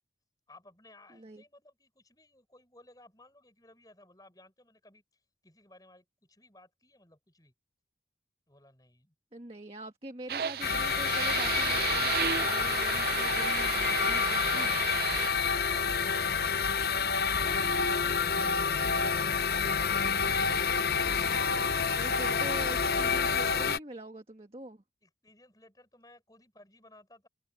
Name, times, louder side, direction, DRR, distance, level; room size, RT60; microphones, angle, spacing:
voice 1, 0.5-5.0 5.4-7.5 8.5-9.1 25.0-27.3, left 1 dB, 20° left, 6.9 m, -58 dB
voice 2, 1.1-1.4 9.3-14.7 21.9-24.8, right 1 dB, 35° right, 1.7 m, -44 dB
sound 1, 10.3-15.3, right 8 dB, 55° right, 0.4 m, -33 dB
sound 2, 10.6-23.8, left 6 dB, 60° left, 0.8 m, -28 dB
head